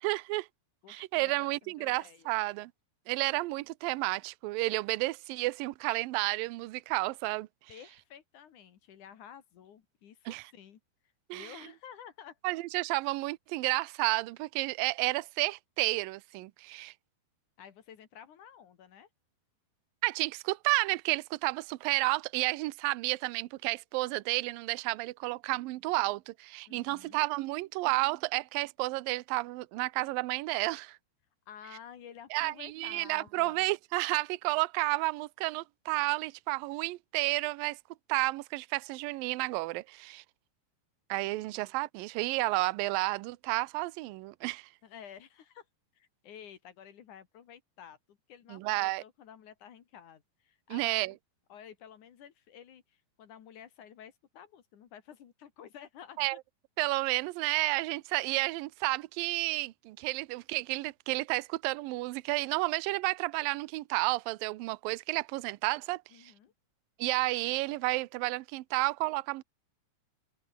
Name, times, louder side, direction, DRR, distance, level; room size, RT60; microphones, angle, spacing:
voice 1, 0.0-0.5 0.9-2.7 3.1-7.5 10.3-10.4 11.3-11.5 12.4-16.9 20.0-31.0 32.3-37.8 38.1-40.2 41.1-44.7 48.5-49.0 50.7-51.1 56.2-56.4 56.8-66.3 67.0-69.4, right 22 dB, 85° right, 2.0 m, -31 dB
voice 2, 0.8-1.4 1.6-2.4 7.7-10.8 11.3-12.4 17.6-19.1 26.7-27.2 31.5-33.6 41.3-41.6 44.8-45.7 45.9-51.0 51.5-56.4 66.1-66.5, left 9 dB, 55° left, 2.8 m, -51 dB
omnidirectional pair, 5.0 m